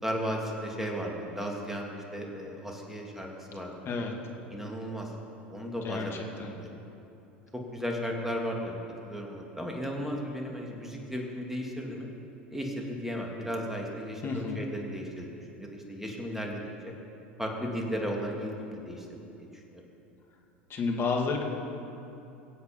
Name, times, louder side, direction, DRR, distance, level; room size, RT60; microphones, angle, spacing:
voice 1, 0.0-3.7 4.5-5.1 5.5-6.7 7.5-12.1 12.5-16.9 17.4-19.2 19.7-19.8, equal, 5° right, 0 dB, 2.8 m, -35 dB
voice 2, 5.8-6.5 14.2-14.6 20.7-21.4, left 4 dB, 40° left, 2 dB, 2.2 m, -31 dB
22.5 x 8.1 x 5.4 m, 2.8 s
hypercardioid pair, 80°, 6 cm